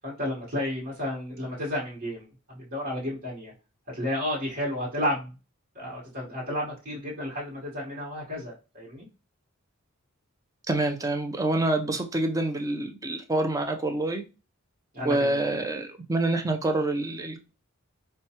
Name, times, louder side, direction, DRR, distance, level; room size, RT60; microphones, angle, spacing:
voice 1, 0.0-3.5 3.9-5.3 5.7-9.1 14.9-15.6, left 1 dB, 45° right, 1.2 m, -32 dB
voice 2, 10.7-14.2 15.0-17.4, right 2 dB, 15° right, 0.5 m, -27 dB
4.5 x 2.2 x 2.8 m
head